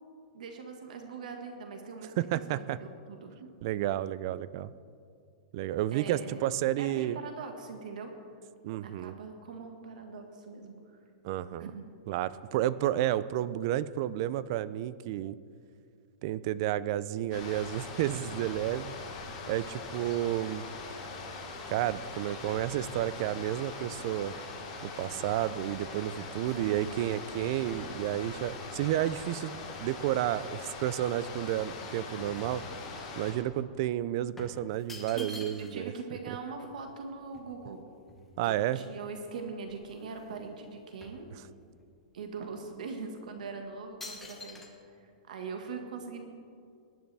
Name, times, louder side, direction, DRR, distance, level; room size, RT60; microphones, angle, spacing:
voice 1, 0.3-2.1 2.5-3.5 5.9-6.4 6.8-8.1 8.8-11.0 11.6-11.8 26.7-27.1 35.1-37.8 38.4-41.3 42.1-44.7 45.0-46.2, right 5 dB, 75° right, 4 dB, 1.5 m, -42 dB
voice 2, 2.2-2.8 3.6-4.7 5.5-7.2 8.6-9.1 11.2-11.7 12.1-15.4 16.2-18.9 19.5-20.7 21.7-24.3 24.8-32.6 33.1-35.9 38.4-38.8, right 13 dB, 35° right, 17 dB, 0.3 m, -31 dB
sound 1, 17.3-33.3, left 3 dB, 30° left, 2.4 m, -42 dB
sound 2, 26.2-30.5 31.0-33.1 33.4-33.6 34.4-35.9 36.2-36.3 36.5-38.7 39.2-39.3 39.6-40.4 40.6-41.9 42.4-42.6 43.2-43.5 44.0-44.7, left 2 dB, 5° left, 1.0 m, -50 dB
19.5 x 10.5 x 3.4 m, 2.4 s
supercardioid pair, 175°, 4 cm